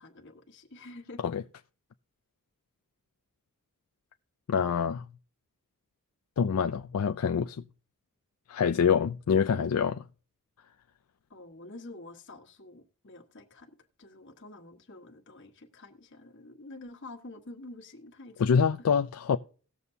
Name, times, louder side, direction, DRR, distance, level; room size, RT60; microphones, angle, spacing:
voice 1, 0.0-1.2 11.3-18.9, left 2 dB, 55° left, 1.4 m, -48 dB
voice 2, 4.5-5.0 6.4-7.6 8.5-10.1 18.4-19.4, left 6 dB, 80° left, 0.4 m, -26 dB
18.0 x 6.9 x 2.7 m
head